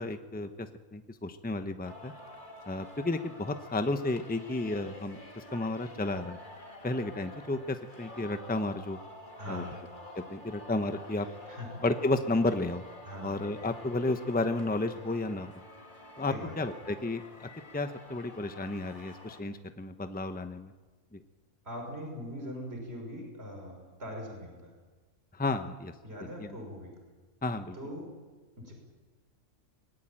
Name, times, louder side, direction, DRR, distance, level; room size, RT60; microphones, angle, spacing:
voice 1, 0.0-2.1 2.7-6.4 6.8-9.0 9.5-9.6 10.3-11.3 11.8-12.8 13.2-15.5 16.2-20.7 21.1-21.2 25.3-25.9 26.4-26.6 27.4-27.8, left 2 dB, 10° left, 8 dB, 0.9 m, -32 dB
Singing, 1.9-19.4, left 1 dB, 35° left, 2.5 m, -49 dB
voice 2, 9.4-9.8 11.5-11.9 13.0-13.4 16.3-16.5 21.6-24.7 26.0-26.9 27.7-28.1 28.6-28.7, equal, 50° right, 1 dB, 6.2 m, -41 dB
24.0 x 19.5 x 9.0 m, 1.3 s
omnidirectional pair, 1.4 m